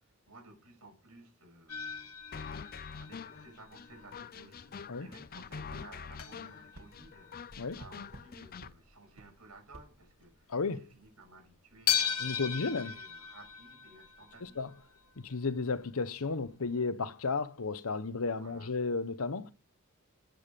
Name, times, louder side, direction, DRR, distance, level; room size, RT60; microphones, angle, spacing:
voice 1, 0.0-2.2 2.7-14.6 18.3-18.7, right 2 dB, 85° right, 6.8 m, -56 dB
sound 1, 1.7-4.2 4.6-4.8 5.3-5.4 5.6-5.7 6.2-8.3 8.7-9.0 9.2-9.3 9.9-10.1 10.5-10.6 11.9-14.8 16.0-16.1 16.5-16.6, left 8 dB, 85° left, 1.8 m, -37 dB
sound 2, 2.3-8.7, left 6 dB, 40° left, 0.5 m, -45 dB
sound 3, 5.7-5.9 6.7-6.9 7.8-8.3 8.6-8.8 9.2-9.3 9.7-9.9, right 1 dB, 70° right, 2.1 m, -51 dB
voice 2, 10.5-10.8 12.2-12.9 14.6-14.7 15.2-19.5, left 4 dB, 70° left, 0.9 m, -33 dB
15.0 x 9.5 x 5.2 m
head